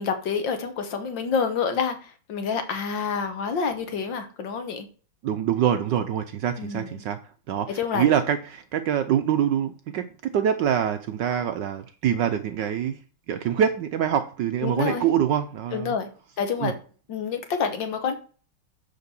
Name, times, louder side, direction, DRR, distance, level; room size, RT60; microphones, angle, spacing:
voice 1, 0.0-4.9 6.6-6.9 7.7-8.1 14.6-15.1 15.7-16.1 16.4-16.7 17.1-18.2, left 6 dB, 65° left, 1.7 m, -28 dB
voice 2, 5.2-7.2 7.5-13.0 13.3-15.9 16.6-16.7, right 9 dB, 70° right, 1.1 m, -25 dB
6.6 x 5.2 x 6.8 m
omnidirectional pair, 2.4 m